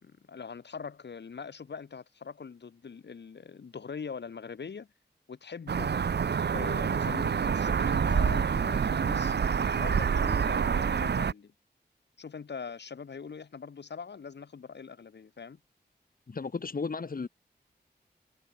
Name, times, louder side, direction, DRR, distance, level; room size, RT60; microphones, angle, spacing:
voice 1, 0.0-4.9 5.3-5.9 6.5-9.4 9.8-11.5 12.2-15.6, left 6 dB, 85° left, 2.3 m, -42 dB
sound 1, 5.7-11.3, right 6 dB, 80° right, 0.9 m, -27 dB
voice 2, 16.3-17.3, left 4 dB, 55° left, 1.9 m, -34 dB
wide cardioid pair, 75°, 17 cm